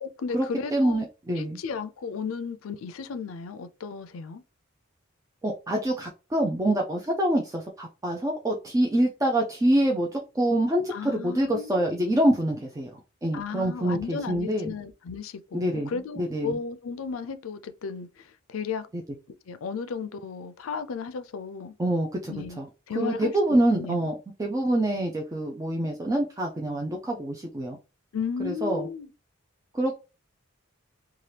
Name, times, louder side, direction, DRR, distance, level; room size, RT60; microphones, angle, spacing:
voice 1, 0.0-1.0 1.4-4.4 10.9-11.9 13.3-18.9 19.5-21.7 22.3-22.6 22.9-24.1 28.1-29.1, left 5 dB, 80° left, 0.4 m, -34 dB
voice 2, 0.7-1.6 5.4-12.9 13.2-14.7 15.5-16.6 21.8-22.7 23.0-27.8 28.4-28.9 29.7-30.0, right 1 dB, 15° right, 0.4 m, -26 dB
2.8 x 2.4 x 3.2 m
head